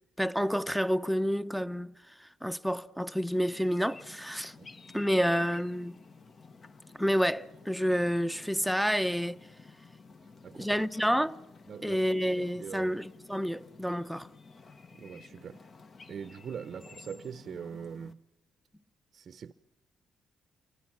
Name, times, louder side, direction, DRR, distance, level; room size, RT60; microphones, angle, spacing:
voice 1, 0.2-4.5 4.9-6.0 7.0-9.4 10.6-11.4 11.8-14.3, equal, ahead, 0.9 m, -29 dB
sound 1, 3.3-18.1, left 4 dB, 40° left, 1.3 m, -52 dB
voice 2, 10.4-10.8 11.7-12.0 12.4-12.9 14.9-15.6 16.1-18.2 19.1-19.5, right 7 dB, 55° right, 0.8 m, -42 dB
29.0 x 24.5 x 6.0 m
cardioid pair, 90°, 0 cm